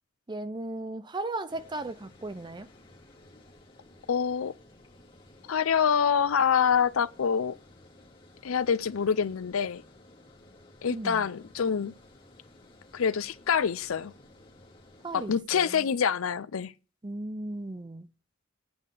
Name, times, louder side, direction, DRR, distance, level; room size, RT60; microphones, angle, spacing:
voice 1, 0.3-2.7 10.9-11.3 15.0-15.9 17.0-18.1, right 2 dB, 20° right, 0.5 m, -36 dB
Water, 1.5-15.4, left 1 dB, 25° left, 2.4 m, -55 dB
voice 2, 4.1-4.5 5.5-7.6 8.4-9.8 10.8-11.9 12.9-14.1 15.1-16.7, left 7 dB, 80° left, 0.5 m, -26 dB
8.7 x 5.5 x 8.1 m
head